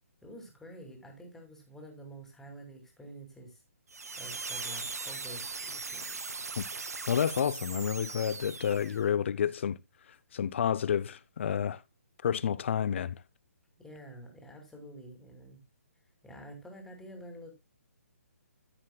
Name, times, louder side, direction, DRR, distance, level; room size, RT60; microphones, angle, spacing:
voice 1, 0.2-3.6 4.2-6.2 13.8-15.6 16.2-17.5, right 1 dB, 5° left, 2.5 m, -48 dB
sound 1, 3.9-9.1, right 4 dB, 80° right, 0.9 m, -39 dB
voice 2, 7.1-9.8 10.3-11.8 12.2-13.2, left 8 dB, 50° left, 0.6 m, -29 dB
13.5 x 7.5 x 2.3 m
figure-of-eight pair, 140°, 8 cm